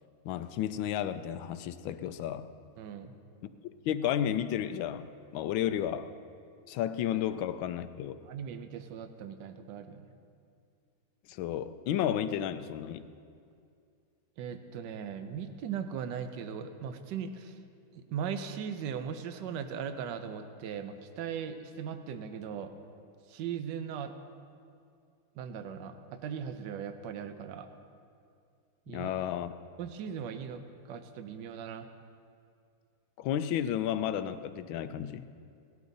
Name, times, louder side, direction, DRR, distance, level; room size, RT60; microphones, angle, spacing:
voice 1, 0.2-2.5 3.8-6.1 6.7-8.2 11.3-13.1 28.9-29.6 33.2-35.3, left 10 dB, 85° left, 12 dB, 1.4 m, -32 dB
voice 2, 2.8-3.1 8.3-10.1 14.4-17.6 17.9-22.7 23.3-24.1 25.3-27.7 28.9-29.1 29.8-31.9, right 7 dB, 70° right, 8 dB, 1.4 m, -39 dB
18.5 x 12.0 x 4.0 m, 2.4 s
omnidirectional pair, 2.1 m